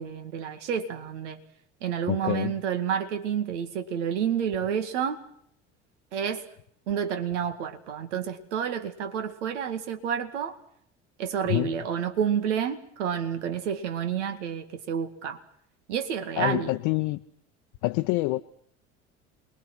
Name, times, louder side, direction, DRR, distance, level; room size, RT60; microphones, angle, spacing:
voice 1, 0.0-1.4 1.8-5.2 6.1-6.4 6.9-10.6 11.2-15.4 15.9-16.7, right 8 dB, 75° right, 8 dB, 2.2 m, -29 dB
voice 2, 2.1-2.6 11.5-11.7 16.4-17.2 17.8-18.4, left 20 dB, 65° left, 5 dB, 0.9 m, -26 dB
28.0 x 21.5 x 6.2 m, 0.67 s
hypercardioid pair, 65°, 36 cm